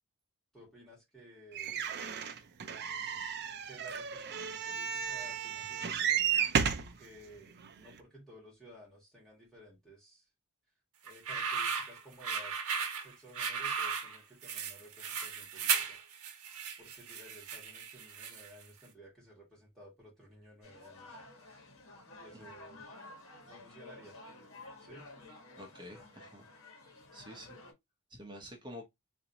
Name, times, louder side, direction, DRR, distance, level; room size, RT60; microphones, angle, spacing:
voice 1, 0.5-2.0 3.6-6.1 6.8-10.2 11.0-12.5 12.9-16.0 16.8-21.2 22.2-22.8 23.4-24.2 24.8-25.1, equal, ahead, 1.8 m, -55 dB
sound 1, 1.5-6.9 7.6-7.7 8.0-8.1, right 8 dB, 50° right, 0.4 m, -33 dB
sound 2, 11.1-18.6, right 6 dB, 70° right, 0.8 m, -36 dB
sound 3, 20.6-27.7, left 2 dB, 65° left, 1.3 m, -52 dB
voice 2, 25.6-26.5 27.1-27.6 28.1-28.8, equal, 20° right, 0.8 m, -48 dB
3.9 x 2.6 x 2.8 m
head